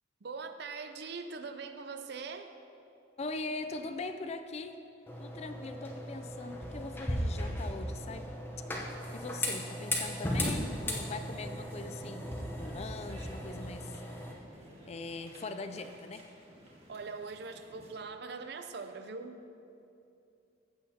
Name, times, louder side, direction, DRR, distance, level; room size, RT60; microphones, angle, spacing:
voice 1, 0.2-2.5 16.9-19.4, right 4 dB, 60° right, 8 dB, 0.5 m, -42 dB
voice 2, 3.2-4.8 5.2-8.3 8.7-14.0 14.9-16.2, left 3 dB, 35° left, 8 dB, 0.4 m, -41 dB
sound 1, 5.1-14.3, left 1 dB, 10° left, 0.8 m, -37 dB
sound 2, 10.3-17.9, equal, 30° right, 1.6 m, -53 dB
14.5 x 7.7 x 2.8 m, 2.6 s
head